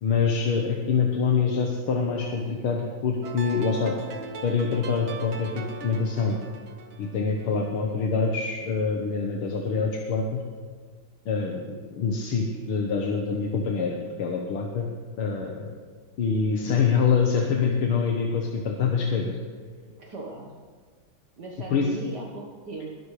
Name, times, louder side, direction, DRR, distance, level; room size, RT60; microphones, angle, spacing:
voice 1, 0.0-3.9 4.4-6.4 7.0-10.4 11.3-14.9 15.2-15.7 16.2-19.3 21.7-21.9, left 5 dB, 85° left, 1 dB, 2.0 m, -25 dB
sound 1, 3.2-8.3, right 4 dB, 75° right, 2.0 m, -40 dB
voice 2, 19.9-20.5 21.4-23.0, right 3 dB, 55° right, -1 dB, 1.9 m, -38 dB
21.5 x 12.5 x 3.3 m, 1.5 s
omnidirectional pair, 2.3 m